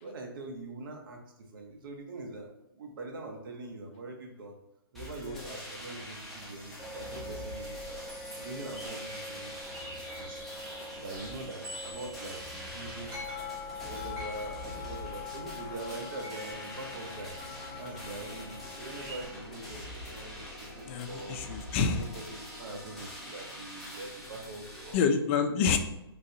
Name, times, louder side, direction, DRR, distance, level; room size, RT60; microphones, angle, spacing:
voice 1, 0.0-4.6 4.9-8.0 8.4-10.4 10.9-13.2 13.8-17.4 17.8-21.4 21.9-25.1, right 2 dB, 55° right, 2 dB, 0.7 m, -43 dB
sound 1, 4.9-24.9, equal, ahead, 0.8 m, -45 dB
sound 2, 6.8-19.2, left 2 dB, 20° right, 1.3 m, -42 dB
sound 3, 10.4-24.1, left 3 dB, 50° left, 0.7 m, -56 dB
voice 2, 20.9-22.0 24.9-25.8, left 6 dB, 30° left, 7 dB, 0.3 m, -28 dB
3.3 x 2.5 x 2.7 m, 0.86 s
hypercardioid pair, 140°, 13 cm